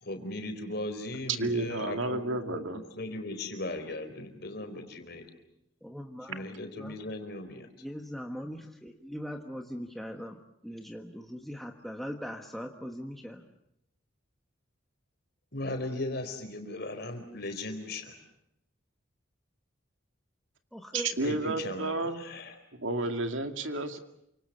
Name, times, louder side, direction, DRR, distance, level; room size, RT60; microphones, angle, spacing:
voice 1, 0.0-2.2 2.5-2.6 3.0-5.3 6.3-7.7 15.5-18.1 21.2-22.6, left 2 dB, 50° left, 7 dB, 4.4 m, -37 dB
voice 2, 1.4-2.8 20.9-22.2 22.8-24.0, right 2 dB, 75° right, 7 dB, 2.3 m, -31 dB
voice 3, 5.8-6.4 6.8-7.0 7.8-13.4 20.7-21.1, equal, ahead, 3 dB, 1.4 m, -40 dB
28.5 x 26.0 x 6.7 m, 0.78 s
head